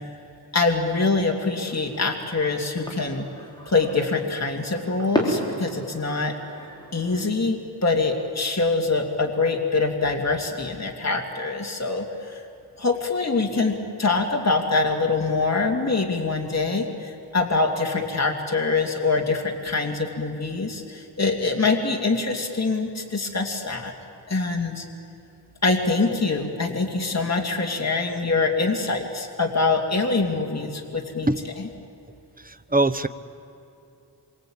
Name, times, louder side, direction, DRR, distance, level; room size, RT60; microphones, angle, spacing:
voice 1, 0.5-3.3 3.7-6.3 6.9-12.4 12.8-23.9 24.3-24.8 25.6-31.3 31.6-31.7, left 3 dB, 40° left, 2 dB, 2.6 m, -24 dB
sound 1, 1.6-7.3, equal, 10° left, 4.8 m, -33 dB
voice 2, 32.7-33.1, right 2 dB, 20° right, 11 dB, 1.0 m, -20 dB
26.5 x 24.0 x 8.9 m, 2.8 s
wide cardioid pair, 100°, 42 cm